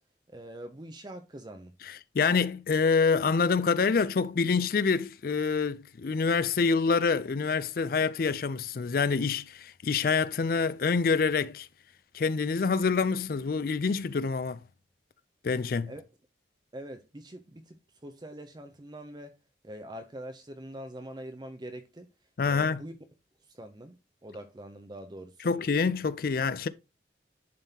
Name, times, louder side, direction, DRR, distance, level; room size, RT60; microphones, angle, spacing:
voice 1, 0.3-1.7 15.9-16.0 16.7-19.4 19.6-22.1 22.4-23.0 23.4-24.0 24.2-25.5, right 1 dB, 25° right, 0.5 m, -44 dB
voice 2, 1.9-11.7 12.1-14.6 15.4-15.9 22.4-22.8 25.4-26.7, left 5 dB, 50° left, 0.4 m, -26 dB
10.5 x 3.7 x 2.8 m
head